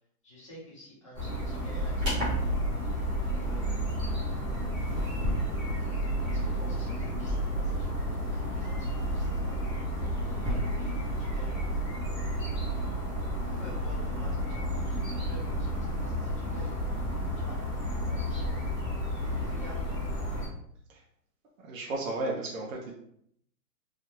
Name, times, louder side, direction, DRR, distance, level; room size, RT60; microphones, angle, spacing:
voice 1, 0.2-2.5 3.3-3.9 6.3-8.0 8.3-9.6 10.4-12.0 13.6-16.8 17.0-18.6 19.4-19.9, equal, 20° left, -6 dB, 0.6 m, -50 dB
sound 1, 1.1-20.5, equal, 10° right, 0.9 m, -31 dB
voice 2, 21.6-22.9, right 2 dB, 55° right, -2 dB, 0.7 m, -33 dB
3.5 x 2.2 x 2.9 m, 0.69 s
hypercardioid pair, 170°, 48 cm